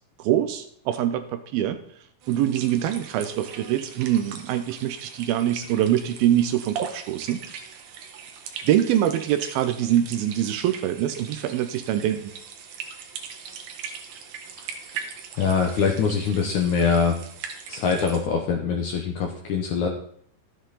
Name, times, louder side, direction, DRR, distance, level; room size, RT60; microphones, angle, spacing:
voice 1, 0.2-1.8 2.3-7.7 8.6-12.3, right 11 dB, 80° right, 9 dB, 2.3 m, -24 dB
sound 1, 2.2-18.2, right 7 dB, 65° right, 2.1 m, -40 dB
voice 2, 15.4-17.2 17.7-19.9, left 6 dB, 75° left, 2 dB, 1.8 m, -23 dB
13.0 x 8.0 x 4.1 m, 0.62 s
omnidirectional pair, 4.7 m